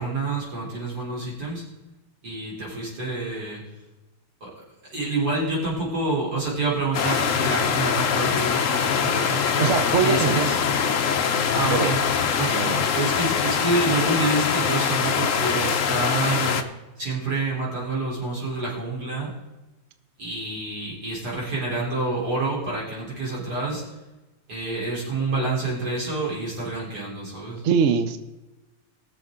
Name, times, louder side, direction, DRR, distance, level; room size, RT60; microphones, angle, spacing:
voice 1, 0.0-1.6 2.2-3.6 4.4-4.5 4.9-9.7 10.0-10.6 11.5-12.0 12.4-12.6 12.9-16.6 17.0-19.3 20.2-23.8 24.5-27.6, right 2 dB, 50° right, -5 dB, 4.5 m, -28 dB
sound 1, 6.9-16.6, left 7 dB, 55° left, 0.9 m, -23 dB
voice 2, 9.6-10.5 11.0-11.2 11.7-11.9 12.5-12.9 27.6-28.2, right 6 dB, 65° right, 10 dB, 0.7 m, -23 dB
21.0 x 7.1 x 3.8 m, 1.1 s
omnidirectional pair, 2.3 m